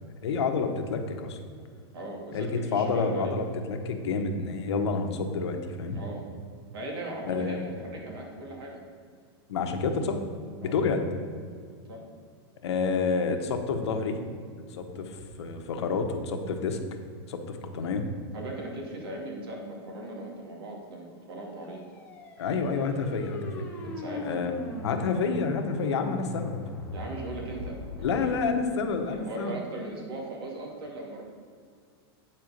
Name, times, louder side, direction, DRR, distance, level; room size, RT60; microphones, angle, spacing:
voice 1, 0.2-1.4 2.3-6.0 7.2-7.7 9.5-10.2 10.6-11.0 12.6-14.2 14.7-16.8 17.3-18.1 22.4-23.6 24.2-26.6 28.0-29.6, left 4 dB, 85° left, 5 dB, 1.1 m, -29 dB
voice 2, 1.9-3.4 5.9-6.2 6.7-8.8 10.6-10.8 11.9-12.0 18.3-21.8 23.5-24.4 26.9-28.3 29.1-31.2, right 2 dB, 65° right, 0 dB, 2.2 m, -39 dB
sound 1, 21.5-28.4, left 2 dB, 10° left, 0.8 m, -39 dB
8.7 x 4.5 x 6.5 m, 2.1 s
supercardioid pair, 175°, 14 cm